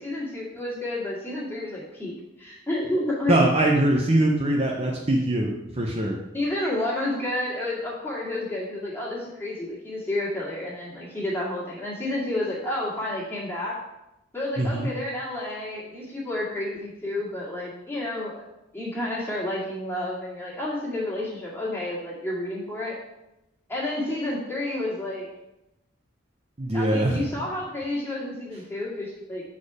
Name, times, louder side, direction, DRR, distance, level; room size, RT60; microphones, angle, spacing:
voice 1, 0.0-3.4 6.3-13.8 14.3-18.3 18.7-23.0 23.7-25.3 26.7-29.4, left 1 dB, 10° left, -7 dB, 2.0 m, -30 dB
voice 2, 3.3-6.2 14.6-14.9 26.6-27.2, right 1 dB, 30° right, -1 dB, 0.7 m, -22 dB
7.2 x 4.3 x 4.8 m, 0.93 s
head